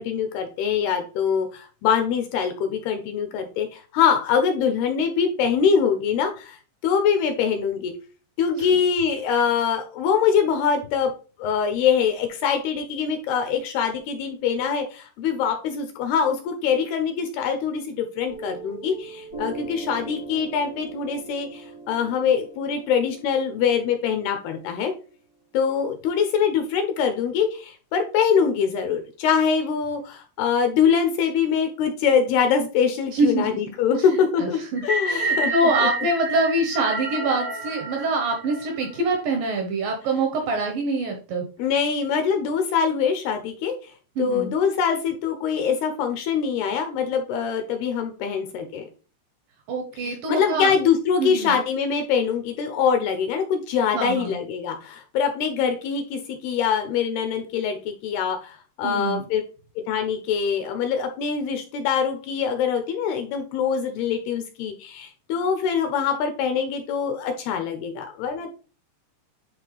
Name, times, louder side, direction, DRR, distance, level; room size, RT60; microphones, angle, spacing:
voice 1, 0.0-6.6 6.8-7.9 8.4-11.1 11.4-24.9 25.5-35.5 35.8-35.9 41.6-43.9 44.2-48.9 50.0-59.4 59.9-68.5, left 7 dB, 80° left, 6 dB, 2.4 m, -24 dB
Piano, 18.3-25.3, right 3 dB, 60° left, 0.9 m, -40 dB
voice 2, 33.1-33.5 34.0-41.5 44.2-44.6 49.7-50.7 51.2-51.6 53.9-54.4 58.8-59.2, right 2 dB, 75° right, 2 dB, 2.2 m, -25 dB
sound 1, 34.8-39.1, right 2 dB, 50° right, 0.8 m, -28 dB
10.0 x 3.7 x 3.2 m, 0.36 s
omnidirectional pair, 5.2 m